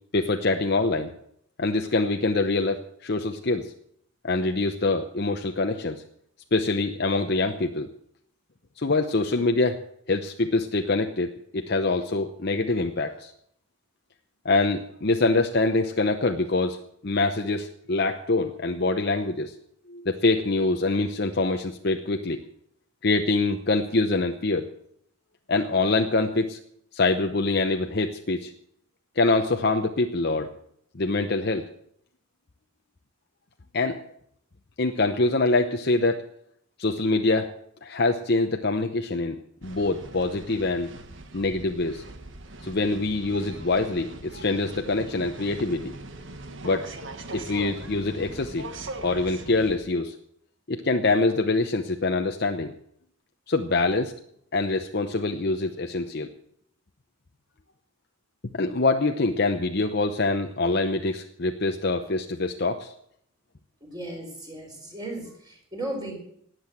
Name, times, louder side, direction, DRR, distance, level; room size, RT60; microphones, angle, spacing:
voice 1, 0.1-1.1 1.6-3.7 4.2-6.0 6.5-7.9 8.8-9.8 10.1-13.3 14.4-19.5 19.9-22.4 23.0-24.7 25.5-26.6 26.9-28.5 29.2-30.5 30.9-31.7 33.7-34.0 34.8-36.3 36.8-37.5 37.8-40.9 41.3-42.0 42.6-45.9 46.6-46.9 47.3-48.6 49.0-50.1 50.7-52.7 53.5-54.1 54.5-56.3 58.5-62.9, left 3 dB, 50° left, 5 dB, 0.8 m, -25 dB
sound 1, 39.6-49.8, right 2 dB, 60° right, 1.4 m, -40 dB
voice 2, 63.8-66.2, right 1 dB, 20° right, 0 dB, 4.8 m, -36 dB
19.0 x 7.9 x 7.8 m, 0.69 s
head